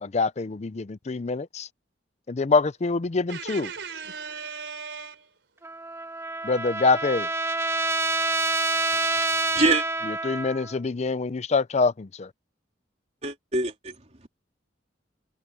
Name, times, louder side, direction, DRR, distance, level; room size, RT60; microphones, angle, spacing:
voice 1, 0.0-1.7 2.3-3.7 6.4-7.3 10.2-12.3, left 4 dB, 40° left, 0.5 m, -25 dB
voice 2, 3.3-5.4, right 6 dB, 75° right, 4.3 m, -37 dB
Trumpet, 5.6-10.8, right 2 dB, 15° right, 1.7 m, -27 dB
voice 3, 9.2-9.8 13.2-13.9, right 2 dB, 35° right, 3.3 m, -25 dB
head